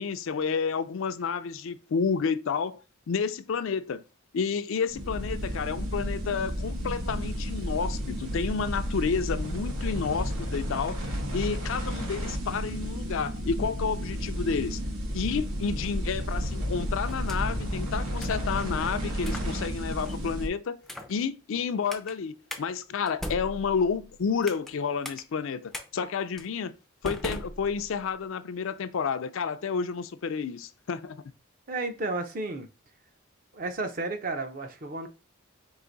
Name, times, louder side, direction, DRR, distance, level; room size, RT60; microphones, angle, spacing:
voice 1, 0.0-2.8 3.1-4.0 4.3-14.8 15.1-20.8 21.1-26.7 27.0-31.2, left 5 dB, 70° left, 0.4 m, -30 dB
sound 1, 4.9-20.5, equal, 90° right, 1.2 m, -32 dB
sound 2, 17.1-17.7 18.2-18.5 19.2-19.5 20.0-20.3 20.8-21.2 21.9-22.1 22.5-22.6 23.1-24.7 25.0-25.2 25.7-25.9 26.4-26.5 27.0-28.1, left 1 dB, ahead, 0.4 m, -39 dB
voice 2, 31.7-32.7 33.5-35.1, right 2 dB, 40° right, 0.6 m, -32 dB
4.8 x 2.5 x 3.9 m
head